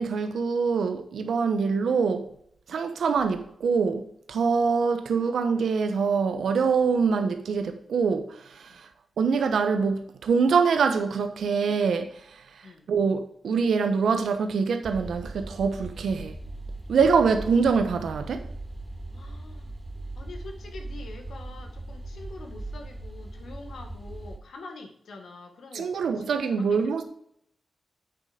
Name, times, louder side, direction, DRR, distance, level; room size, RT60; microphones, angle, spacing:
voice 1, 0.0-2.3 2.7-8.9 9.2-16.4 16.9-18.5 25.7-27.0, right 5 dB, 85° right, 0.9 m, -24 dB
sound 1, 14.8-24.4, right 2 dB, 15° right, 3.4 m, -39 dB
voice 2, 19.1-19.7 20.2-27.0, left 3 dB, 80° left, 1.6 m, -45 dB
8.3 x 6.4 x 5.1 m
cardioid pair, 75°, 0 cm